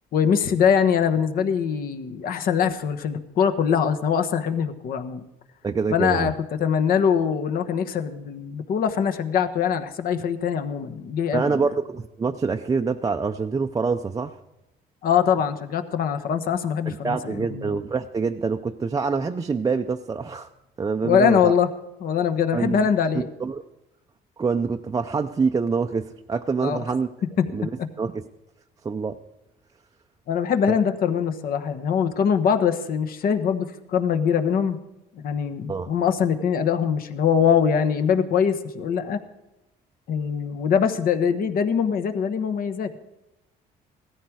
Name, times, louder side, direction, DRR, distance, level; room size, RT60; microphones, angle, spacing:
voice 1, 0.1-5.2 5.9-6.3 6.6-11.6 15.0-17.8 21.0-21.7 22.0-23.3 26.6-26.8 27.4-27.5 30.3-34.8 35.2-39.2 40.1-43.0, left 7 dB, 60° left, 8 dB, 1.2 m, -23 dB
voice 2, 5.6-6.3 11.3-14.4 16.9-20.5 20.8-21.5 22.5-22.8 23.1-23.6 24.4-27.1 27.5-27.7 28.0-28.3 28.8-29.2 35.7-35.9, right 5 dB, 20° right, 4 dB, 0.5 m, -26 dB
16.5 x 13.5 x 4.7 m, 0.95 s
cardioid pair, 110°, 17 cm